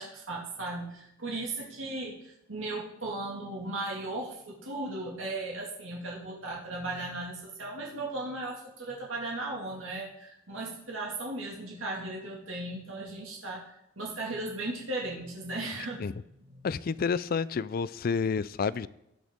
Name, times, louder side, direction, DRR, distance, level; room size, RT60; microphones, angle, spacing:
voice 1, 0.0-13.6 14.0-16.0 16.5-16.7, right 2 dB, 80° right, -3 dB, 2.1 m, -36 dB
voice 2, 16.6-18.9, left 5 dB, 50° left, 18 dB, 0.4 m, -29 dB
18.0 x 6.3 x 3.6 m, 0.82 s
head